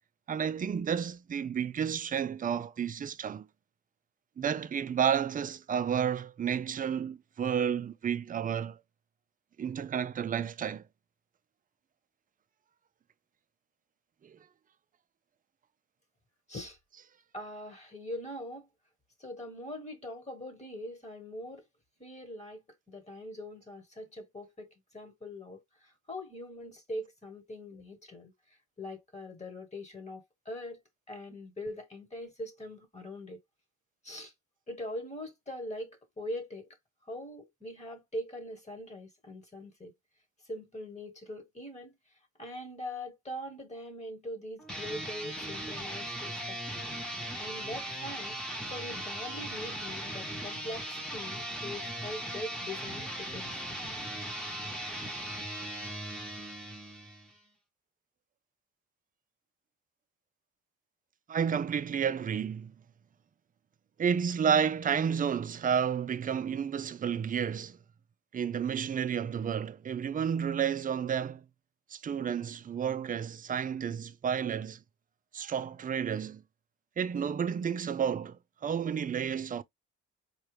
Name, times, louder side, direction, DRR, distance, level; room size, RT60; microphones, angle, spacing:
voice 1, 0.3-3.5 4.4-8.8 9.6-10.8 14.2-14.4 61.3-62.7 64.0-67.8 68.3-71.4 71.9-74.8 75.3-76.4 77.0-79.6, right 7 dB, 30° right, 0.4 m, -31 dB
voice 2, 17.3-18.7 19.2-21.6 22.0-28.3 28.8-30.8 31.1-33.4 34.0-34.3 34.7-36.7 37.1-39.9 40.5-42.0 42.4-46.9 47.4-48.4 48.6-53.5, left 1 dB, 20° left, 1.6 m, -42 dB
sound 1, 44.6-57.4, right 1 dB, ahead, 1.1 m, -38 dB
4.4 x 2.4 x 3.3 m
cardioid pair, 90°, 30 cm